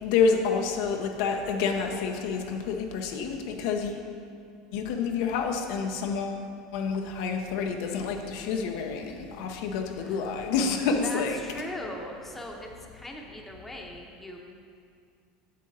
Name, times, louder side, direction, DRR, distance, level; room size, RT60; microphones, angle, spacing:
voice 1, 0.0-4.0 4.7-6.4 6.7-11.4, left 5 dB, 70° left, 3 dB, 0.7 m, -28 dB
voice 2, 10.9-14.4, left 1 dB, 10° left, 0 dB, 1.0 m, -40 dB
7.5 x 7.4 x 4.1 m, 2.3 s
supercardioid pair, 120°, 2 cm